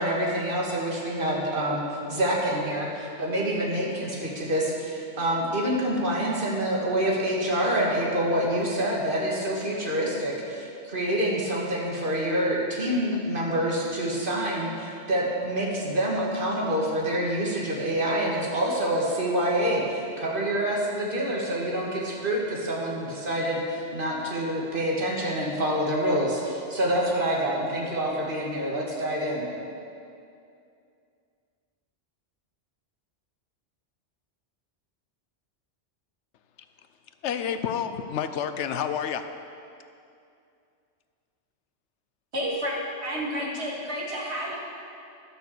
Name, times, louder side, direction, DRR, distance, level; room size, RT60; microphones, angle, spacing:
voice 1, 0.0-29.5, right 1 dB, 50° right, -3 dB, 1.9 m, -27 dB
voice 2, 37.2-39.2, left 8 dB, 80° left, 9 dB, 0.9 m, -29 dB
voice 3, 42.3-42.8 43.0-44.6, equal, 70° right, -3 dB, 2.1 m, -30 dB
11.5 x 6.4 x 6.6 m, 2.5 s
omnidirectional pair, 1.2 m